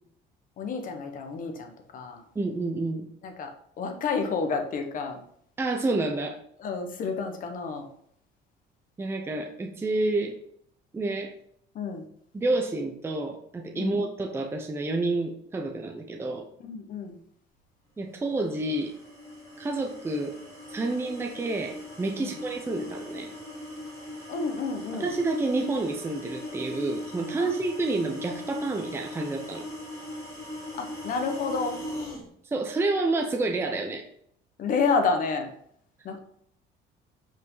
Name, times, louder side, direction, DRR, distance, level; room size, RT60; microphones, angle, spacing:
voice 1, 0.6-2.2 3.2-3.5 3.8-5.2 6.6-7.9 11.7-12.1 13.7-14.0 16.6-17.2 22.2-22.4 24.3-25.1 27.4-27.6 30.8-31.8 34.6-35.5 36.0-36.2, left 4 dB, 45° left, 5 dB, 1.3 m, -30 dB
voice 2, 2.3-3.1 5.6-6.4 9.0-10.4 10.9-11.3 12.3-16.5 18.0-18.9 19.6-20.3 20.7-23.3 25.0-29.6 32.4-34.0, right 2 dB, 15° right, 2 dB, 0.7 m, -29 dB
sound 1, 18.3-32.2, left 1 dB, 15° left, 3.1 m, -39 dB
7.7 x 5.4 x 4.0 m, 0.67 s
cardioid pair, 160°, 19 cm